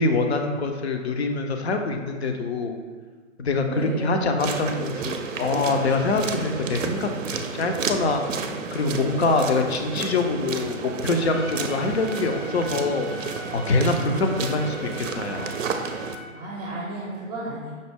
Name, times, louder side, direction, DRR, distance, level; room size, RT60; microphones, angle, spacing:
voice 1, 0.0-2.8 3.4-8.2 8.7-13.1 13.5-15.6, left 3 dB, 55° left, 5 dB, 0.5 m, -24 dB
voice 2, 3.6-4.4 16.3-17.7, right 1 dB, 30° right, -5 dB, 0.7 m, -33 dB
sound 1, 4.4-16.2, right 5 dB, 65° right, 0.5 m, -31 dB
Trumpet, 11.1-16.4, left 1 dB, 80° left, 1.5 m, -41 dB
5.2 x 2.0 x 3.4 m, 1.5 s
figure-of-eight pair, 135°, 40 cm